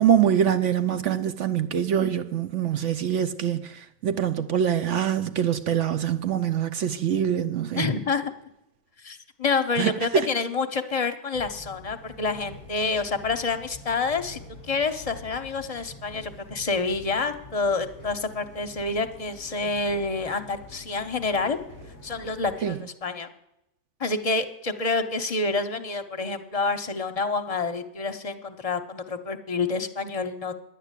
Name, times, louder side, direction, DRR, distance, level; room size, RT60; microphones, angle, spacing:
voice 1, 0.0-7.9 9.8-10.3 22.6-22.7, right 9 dB, 65° right, 0.9 m, -24 dB
voice 2, 7.8-8.3 9.0-21.6 22.0-23.3 24.0-30.6, left 4 dB, 30° left, 0.8 m, -28 dB
sound 1, 11.3-22.6, left 2 dB, 85° right, 7.3 m, -46 dB
10.5 x 9.3 x 8.2 m
omnidirectional pair, 1.4 m